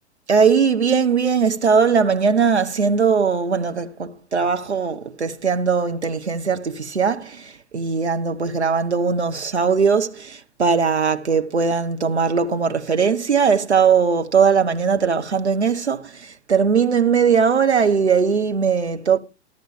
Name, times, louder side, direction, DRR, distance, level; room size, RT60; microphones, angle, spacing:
voice 1, 0.3-19.2, right 6 dB, 75° right, 1.2 m, -19 dB
13.5 x 11.5 x 3.3 m
figure-of-eight pair, 100°, 34 cm